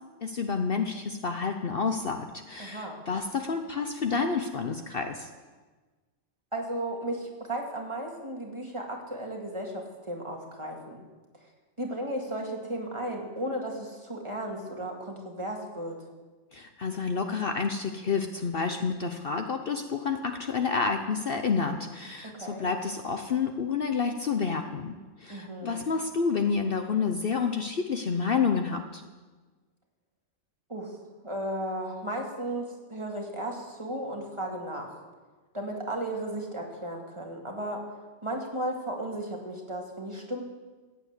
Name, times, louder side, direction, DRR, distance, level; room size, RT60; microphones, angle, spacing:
voice 1, 0.2-5.3 16.5-29.0, left 5 dB, 50° left, 6 dB, 0.9 m, -29 dB
voice 2, 2.6-3.1 6.5-11.0 11.8-16.0 22.2-22.7 25.3-25.8 30.7-31.0 31.2-34.9 35.5-37.8 38.2-40.4, right 1 dB, 25° right, 0 dB, 2.2 m, -35 dB
14.0 x 9.2 x 8.1 m, 1.3 s
omnidirectional pair, 1.3 m